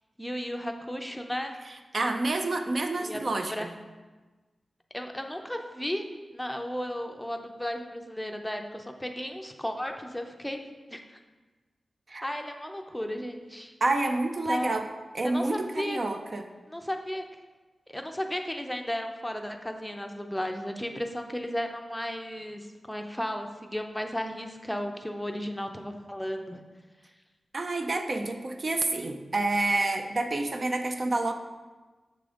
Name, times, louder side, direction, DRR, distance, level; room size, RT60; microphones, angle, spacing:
voice 1, 0.2-1.6 3.0-3.7 4.9-10.6 10.9-11.2 12.2-13.7 14.5-14.8 15.2-16.0 16.7-17.2 17.9-26.6, equal, 5° left, 4 dB, 0.5 m, -34 dB
voice 2, 1.9-3.7 12.1-12.2 13.8-14.8 15.1-16.4 27.5-31.3, right 2 dB, 50° right, 5 dB, 0.5 m, -28 dB
6.8 x 3.7 x 5.1 m, 1.3 s
wide cardioid pair, 100°, 0 cm